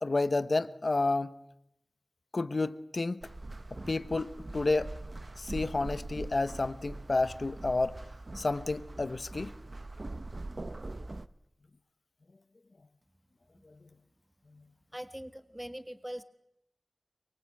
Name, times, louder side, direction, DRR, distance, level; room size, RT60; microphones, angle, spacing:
voice 1, 0.0-1.3 2.3-3.2 3.7-5.0 5.4-8.0 8.3-9.5, left 3 dB, 65° left, 13 dB, 1.0 m, -30 dB
sound 1, 3.2-11.3, right 2 dB, 50° right, 1.1 m, -42 dB
voice 2, 14.9-16.2, equal, 10° right, 10 dB, 1.6 m, -41 dB
24.0 x 23.5 x 8.9 m, 0.80 s
wide cardioid pair, 55°, 0 cm